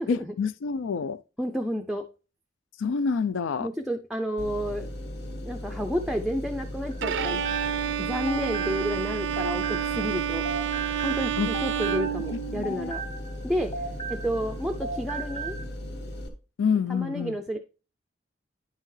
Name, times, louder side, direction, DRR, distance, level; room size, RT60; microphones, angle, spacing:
voice 1, 0.1-1.2 2.8-3.7 11.4-11.5 12.5-12.9 16.6-17.4, left 5 dB, 90° left, 0.4 m, -27 dB
voice 2, 1.4-2.0 3.6-4.9 5.4-7.4 8.0-10.5 11.0-13.0 13.4-15.6 16.9-17.6, equal, ahead, 0.4 m, -31 dB
sound 1, 4.4-16.3, left 1 dB, 60° left, 1.4 m, -37 dB
sound 2, 6.9-10.2 10.4-14.5 14.8-15.6, right 3 dB, 25° left, 0.8 m, -37 dB
Bowed string instrument, 7.0-12.9, right 10 dB, 70° right, 0.4 m, -29 dB
9.8 x 5.6 x 3.2 m
head